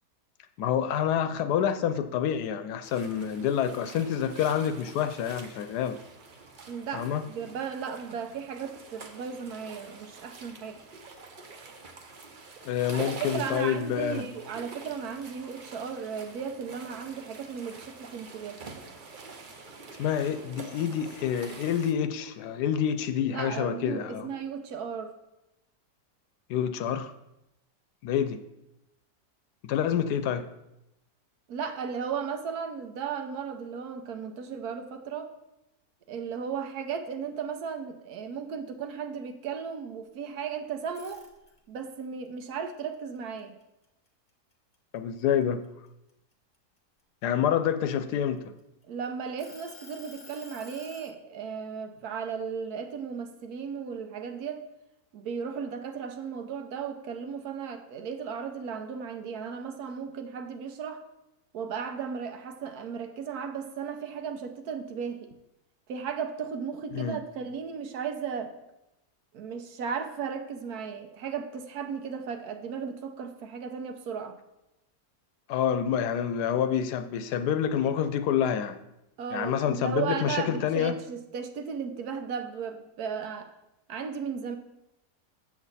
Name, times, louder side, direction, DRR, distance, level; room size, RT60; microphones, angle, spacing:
voice 1, 0.6-6.0 6.9-7.2 12.6-14.3 20.0-24.3 26.5-27.1 28.0-28.4 29.6-30.5 44.9-45.6 47.2-48.5 66.9-67.2 75.5-78.8 79.3-81.0, left 9 dB, 75° left, 10 dB, 1.1 m, -27 dB
sound 1, 2.8-21.9, right 4 dB, 45° right, 0.6 m, -46 dB
voice 2, 6.7-10.8 13.1-18.6 23.3-25.1 31.5-35.3 36.1-41.2 41.7-43.5 48.9-54.7 55.1-61.0 61.5-65.3 65.9-68.5 69.3-74.4 79.2-83.5 83.9-84.6, right 6 dB, 70° right, 7 dB, 1.2 m, -35 dB
sound 2, 40.9-41.8 42.3-44.1 44.5-44.8 45.2-47.0 47.7-48.8 49.4-51.1, left 3 dB, 25° left, 1.0 m, -51 dB
7.3 x 7.3 x 4.1 m, 0.88 s
omnidirectional pair, 1.8 m